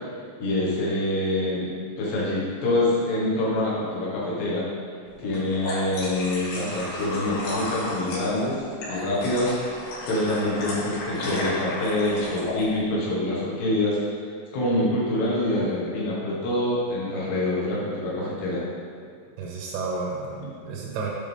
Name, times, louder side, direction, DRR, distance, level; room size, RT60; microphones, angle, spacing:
voice 1, 0.4-1.7 2.0-4.6 5.2-8.6 8.9-9.5 10.1-14.0 14.5-18.6, left 1 dB, 70° left, -6 dB, 3.5 m, -25 dB
sound 1, 5.2-12.7, left 1 dB, 85° left, 4.7 m, -33 dB
voice 2, 19.4-21.1, right 4 dB, 80° right, -4 dB, 3.2 m, -32 dB
8.9 x 5.9 x 3.5 m, 2.2 s
omnidirectional pair, 5.4 m